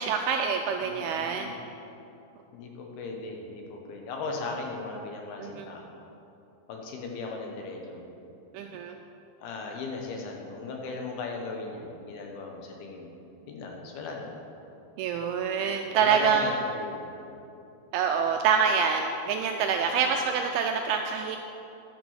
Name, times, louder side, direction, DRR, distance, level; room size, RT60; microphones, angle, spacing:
voice 1, 0.0-1.5 5.4-5.7 8.5-9.0 15.0-16.5 17.9-21.4, right 6 dB, 85° right, 4 dB, 2.2 m, -26 dB
voice 2, 0.8-1.7 2.5-5.9 6.7-8.0 9.4-13.1 13.5-14.3 15.9-17.1, left 3 dB, 70° left, 1 dB, 2.7 m, -37 dB
11.0 x 6.1 x 7.0 m, 2.8 s
omnidirectional pair, 4.9 m